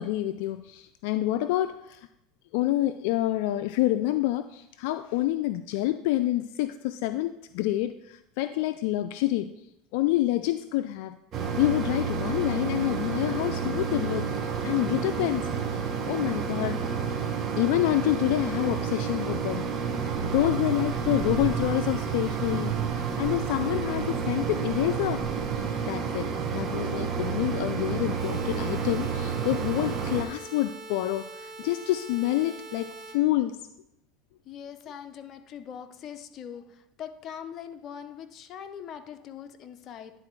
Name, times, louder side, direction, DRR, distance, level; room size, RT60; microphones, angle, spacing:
voice 1, 0.0-2.1 2.5-9.5 9.9-11.2 11.6-14.3 14.6-16.8 17.6-19.7 20.2-25.3 25.5-26.3 26.5-33.6, left 15 dB, 70° left, 10 dB, 0.3 m, -27 dB
Mechanisms, 11.3-30.2, right 6 dB, 40° right, 1.0 m, -30 dB
sound 1, 28.1-33.1, right 3 dB, 25° right, 2.4 m, -43 dB
voice 2, 34.5-40.2, left 8 dB, 45° left, 8 dB, 0.7 m, -42 dB
10.5 x 4.0 x 4.5 m, 0.83 s
supercardioid pair, 115°, 0 cm